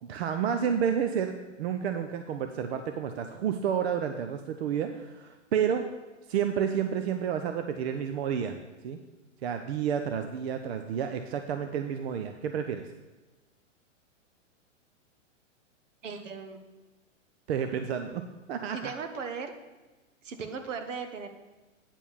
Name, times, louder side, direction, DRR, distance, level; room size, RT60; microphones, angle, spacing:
voice 1, 0.0-5.9 6.3-8.6 8.8-9.0 9.4-12.9 17.5-18.9, right 8 dB, 55° right, 7 dB, 0.7 m, -30 dB
voice 2, 16.0-16.6 18.7-19.5 20.2-21.3, right 5 dB, 70° right, 7 dB, 1.3 m, -37 dB
9.0 x 4.5 x 7.0 m, 1.2 s
hypercardioid pair, 140°, 38 cm